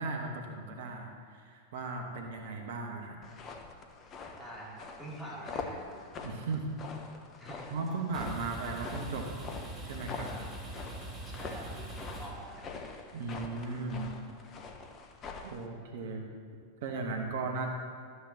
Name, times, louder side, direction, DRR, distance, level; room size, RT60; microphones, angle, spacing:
voice 1, 0.0-3.2 6.2-6.8 7.7-9.3 9.8-10.4 13.1-14.2 15.4-16.3 16.8-17.7, right 3 dB, 55° right, 2 dB, 1.2 m, -36 dB
sound 1, 3.2-15.6, left 4 dB, 30° left, 1.0 m, -44 dB
voice 2, 4.4-5.8 7.4-7.7 11.2-12.7, right 1 dB, 10° left, -7 dB, 2.7 m, -45 dB
sound 2, 7.9-13.0, right 2 dB, 15° right, 2.7 m, -44 dB
13.0 x 9.8 x 2.9 m, 2.1 s
figure-of-eight pair, 90°, 0 cm